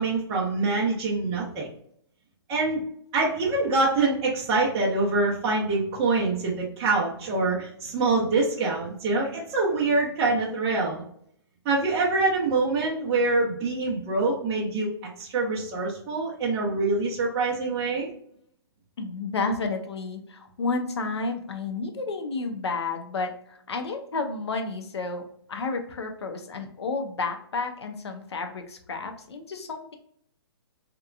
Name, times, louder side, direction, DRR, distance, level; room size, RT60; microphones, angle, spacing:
voice 1, 0.0-1.7 2.5-2.8 3.1-11.0 11.6-14.9 15.2-18.1, right 3 dB, 25° right, -6 dB, 0.6 m, -25 dB
voice 2, 19.0-25.2 25.5-30.0, left 3 dB, 90° left, 5 dB, 0.6 m, -31 dB
2.8 x 2.2 x 2.4 m, 0.67 s
hypercardioid pair, 140°, 14 cm